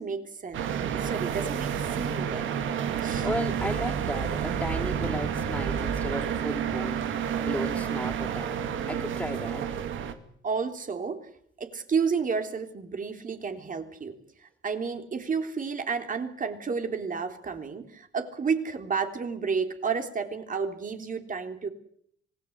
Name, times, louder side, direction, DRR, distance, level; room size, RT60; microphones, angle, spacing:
voice 1, 0.0-2.5 3.0-3.3 10.4-11.3 11.6-14.2 14.4-21.7, right 5 dB, 40° right, 6 dB, 3.6 m, -31 dB
sound 1, 0.5-10.1, right 8 dB, 80° right, 2.3 m, -30 dB
voice 2, 3.2-8.6 8.9-9.7, left 1 dB, 5° left, -4 dB, 3.8 m, -35 dB
26.5 x 18.5 x 8.1 m, 0.66 s
cardioid pair, 90°, 20 cm